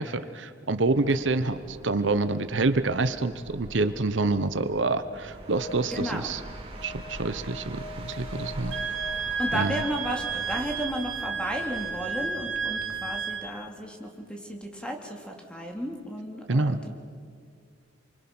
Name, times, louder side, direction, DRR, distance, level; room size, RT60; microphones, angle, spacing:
voice 1, 0.0-6.4 6.8-8.8 9.5-9.8 16.5-16.8, right 3 dB, 70° right, 11 dB, 0.9 m, -27 dB
sound 1, 0.7-13.4, right 1 dB, 30° right, 3.0 m, -44 dB
sound 2, 5.3-10.1, left 1 dB, 60° left, 1.6 m, -44 dB
voice 2, 5.9-6.3 9.4-16.9, equal, 5° left, 1 dB, 2.9 m, -33 dB
Wind instrument woodwind instrument, 8.7-13.5, right 5 dB, 90° right, 2.0 m, -32 dB
28.0 x 24.5 x 6.1 m, 2.1 s
head